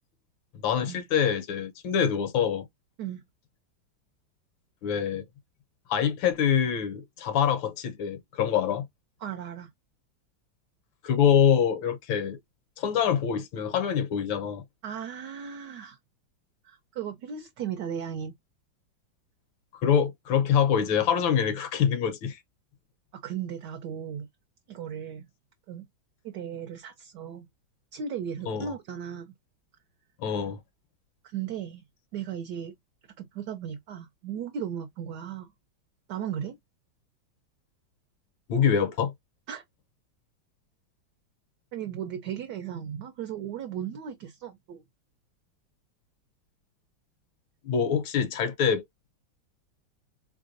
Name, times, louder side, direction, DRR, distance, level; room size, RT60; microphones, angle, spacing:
voice 1, 0.6-2.7 4.8-5.2 5.9-8.9 11.0-12.4 12.8-14.6 19.7-22.4 28.5-28.7 30.2-30.6 38.5-39.1 47.6-48.8, left 8 dB, 80° left, 1.5 m, -25 dB
voice 2, 9.2-9.7 14.8-16.0 16.6-18.3 23.2-24.3 24.7-25.3 25.7-25.9 26.2-27.5 27.9-29.3 31.2-31.8 32.1-32.7 33.2-35.5 36.1-36.6 39.5-39.6 41.7-44.8, right 8 dB, 70° right, 1.1 m, -36 dB
3.6 x 3.3 x 2.5 m
omnidirectional pair, 2.2 m